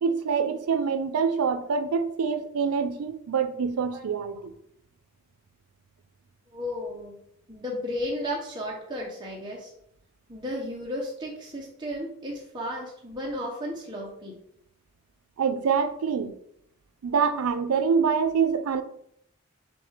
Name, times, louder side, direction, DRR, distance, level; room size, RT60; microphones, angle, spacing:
voice 1, 0.0-4.5 15.4-16.3 17.0-18.8, right 6 dB, 90° right, 0.4 m, -25 dB
voice 2, 6.5-7.2 7.5-9.7 10.3-14.4, left 1 dB, 20° right, 0.6 m, -34 dB
6.1 x 2.3 x 3.2 m
head